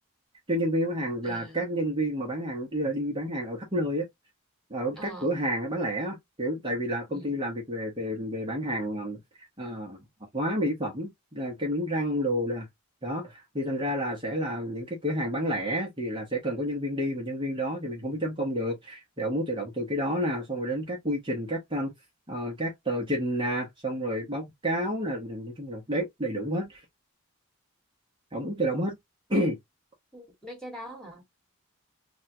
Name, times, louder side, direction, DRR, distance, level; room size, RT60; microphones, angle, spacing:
voice 1, 0.5-4.1 4.7-10.0 10.3-12.7 13.0-21.9 22.3-26.8 28.3-29.0 29.3-29.6, equal, 20° right, 0.9 m, -30 dB
voice 2, 1.2-1.7 5.0-5.3 7.1-7.4 30.1-31.2, equal, 5° left, 1.4 m, -43 dB
3.5 x 2.3 x 2.7 m
head